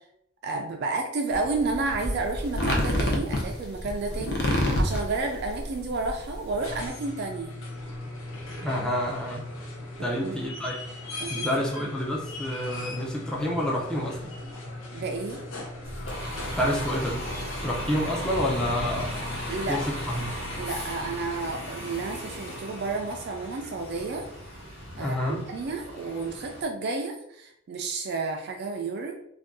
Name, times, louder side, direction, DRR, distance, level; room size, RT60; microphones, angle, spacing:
voice 1, 0.4-7.6 10.0-10.4 11.2-11.5 11.8-11.9 14.9-15.4 19.5-19.8 20.6-24.3 25.0-29.1, right 3 dB, 55° right, 3 dB, 0.3 m, -31 dB
sound 1, 1.3-6.9, left 1 dB, 50° left, 0.6 m, -28 dB
sound 2, 6.4-20.8 22.5-22.6, left 2 dB, 90° left, 0.7 m, -39 dB
voice 2, 8.6-9.4 10.0-10.8 11.3-14.2 16.5-17.2 17.6-19.1 19.7-19.8 20.1-20.3 25.0-25.4, equal, 5° left, -4 dB, 0.5 m, -28 dB
Bus, 15.8-26.6, equal, 70° left, 1.1 m, -36 dB
2.6 x 2.3 x 3.5 m, 0.74 s
head